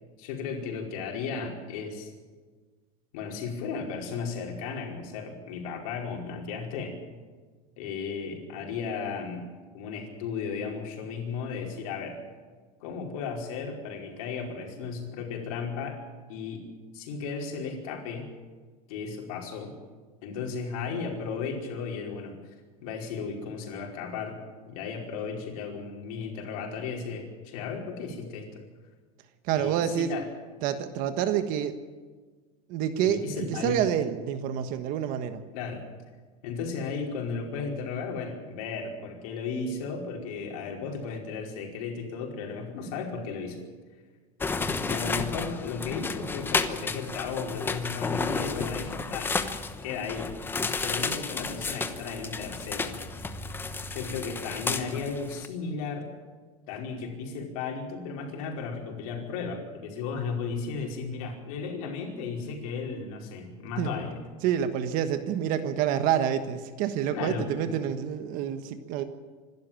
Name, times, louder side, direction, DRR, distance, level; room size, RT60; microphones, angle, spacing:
voice 1, 0.2-2.1 3.1-6.9 7.8-9.5 9.7-12.2 12.8-16.0 16.3-16.6 16.9-18.3 18.9-19.7 20.2-22.3 22.8-24.4 24.7-28.5 29.5-30.3 33.0-33.9 35.5-35.8 36.4-43.6 44.8-49.3 49.8-50.3 50.8-53.0 53.9-56.1 56.7-64.2 67.1-67.5, left 5 dB, 75° left, 1 dB, 5.0 m, -35 dB
voice 2, 29.4-30.1 30.6-31.8 32.7-35.4 63.8-63.9 64.4-69.0, right 9 dB, 50° right, 10 dB, 1.4 m, -28 dB
sound 1, 44.4-55.5, left 4 dB, 10° left, 1.0 m, -32 dB
26.0 x 12.5 x 8.9 m, 1.4 s
cardioid pair, 160°, 18 cm